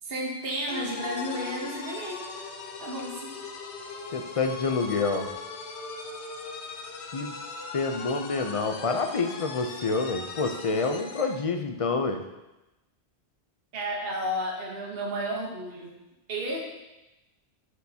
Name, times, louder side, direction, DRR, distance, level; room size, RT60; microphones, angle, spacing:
voice 1, 0.0-2.3 2.8-3.3 13.7-16.0 16.3-16.6, right 1 dB, 60° right, -2 dB, 1.3 m, -32 dB
sound 1, 0.7-11.4, left 4 dB, 75° left, 1.0 m, -39 dB
voice 2, 4.1-5.3 7.1-7.4 7.7-12.2, left 4 dB, 40° left, 5 dB, 0.5 m, -27 dB
9.7 x 6.4 x 2.8 m, 0.99 s
omnidirectional pair, 1.1 m